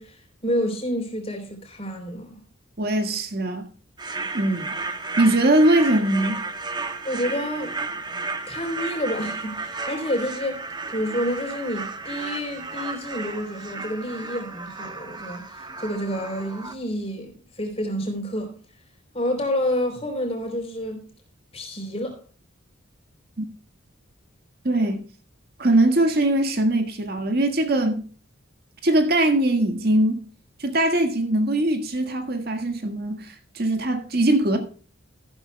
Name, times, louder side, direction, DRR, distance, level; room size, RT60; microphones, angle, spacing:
voice 1, 0.0-2.4 7.0-8.0 8.5-10.6 10.9-18.5 19.1-21.0 21.5-22.2, equal, 30° left, 3.5 m, -29 dB
voice 2, 2.8-3.7 4.3-4.7 5.2-6.4 23.4-23.5 24.7-25.0 25.6-28.0 28.8-30.3 30.6-34.6, right 1 dB, 45° right, 1.7 m, -21 dB
sound 1, 4.0-16.7, right 3 dB, 20° right, 1.0 m, -33 dB
14.0 x 12.0 x 2.2 m
head